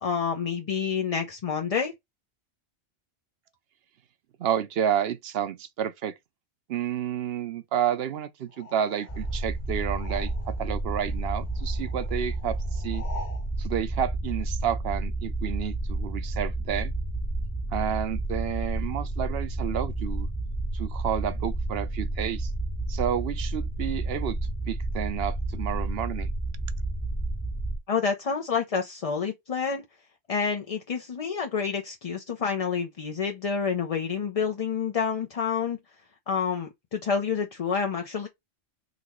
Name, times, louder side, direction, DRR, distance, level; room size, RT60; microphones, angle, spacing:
voice 1, 0.0-1.9 27.9-29.8 30.3-35.8 36.3-38.3, left 6 dB, 45° left, 0.5 m, -28 dB
voice 2, 4.4-6.1 6.7-13.0 13.6-16.9 17.7-20.3 20.7-22.5 22.9-26.3, right 9 dB, 65° right, 0.8 m, -30 dB
sound 1, 8.5-10.7 11.0-13.5, left 3 dB, 70° left, 1.3 m, -46 dB
sound 2, 9.1-27.8, right 2 dB, 20° left, 0.9 m, -31 dB
4.0 x 2.9 x 3.0 m
omnidirectional pair, 1.2 m